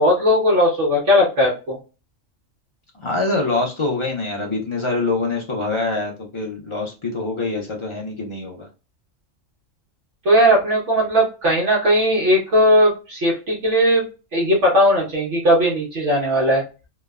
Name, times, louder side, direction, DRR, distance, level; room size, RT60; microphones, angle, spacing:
voice 1, 0.0-1.8 10.2-14.1 14.3-16.6, equal, 65° right, -4 dB, 1.2 m, -17 dB
voice 2, 3.0-8.7, left 3 dB, 55° left, 0 dB, 0.3 m, -24 dB
2.9 x 2.1 x 2.3 m, 0.31 s
omnidirectional pair, 1.4 m